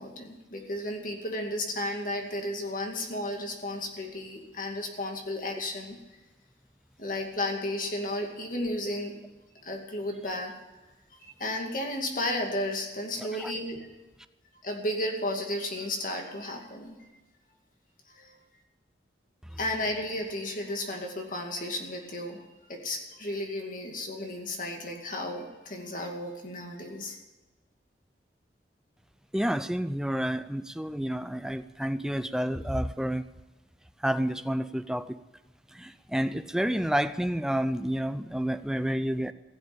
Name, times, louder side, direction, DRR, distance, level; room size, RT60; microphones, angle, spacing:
voice 1, 0.0-6.0 7.0-9.2 9.6-10.5 11.3-13.9 14.6-17.0 18.1-18.3 19.6-27.2, left 1 dB, 50° left, 2 dB, 2.3 m, -33 dB
voice 2, 13.2-13.5 29.3-33.3 34.0-35.2 35.7-39.3, equal, 5° right, 11 dB, 0.5 m, -29 dB
16.0 x 7.9 x 8.7 m, 1.1 s
head